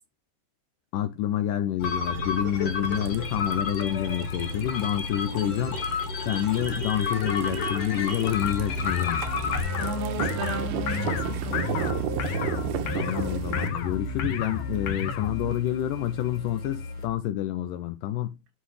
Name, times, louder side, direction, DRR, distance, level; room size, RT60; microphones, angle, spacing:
voice 1, 0.9-5.8 6.3-9.2 12.8-18.4, left 12 dB, 85° left, 1.9 m, -28 dB
sound 1, 1.8-17.1, left 3 dB, 45° left, 2.4 m, -32 dB
sound 2, 2.8-13.7, right 10 dB, 75° right, 2.2 m, -35 dB
sound 3, 8.4-15.5, left 5 dB, 70° left, 2.5 m, -32 dB
voice 2, 9.8-11.8, right 1 dB, 90° right, 3.6 m, -34 dB
11.5 x 4.1 x 3.2 m
omnidirectional pair, 4.5 m